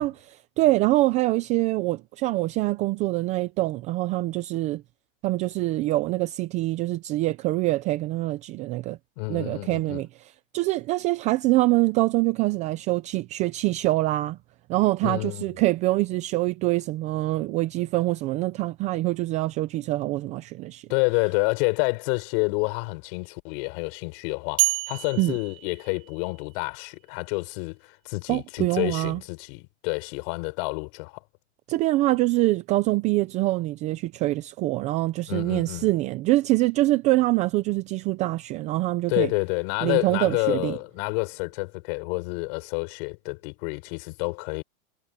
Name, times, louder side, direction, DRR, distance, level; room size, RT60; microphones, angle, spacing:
voice 1, 0.0-4.8 5.2-9.0 9.3-10.1 10.5-14.4 14.7-20.9 25.2-25.3 28.3-29.2 31.7-39.3 39.8-40.8, right 18 dB, 20° right, 0.4 m, -24 dB
voice 2, 9.2-10.0 15.0-15.4 20.9-31.2 35.3-35.9 39.1-44.6, left 35 dB, 45° left, 6.8 m, -29 dB
sound 1, 24.6-26.6, right 25 dB, 45° right, 2.2 m, -29 dB
supercardioid pair, 150°, 38 cm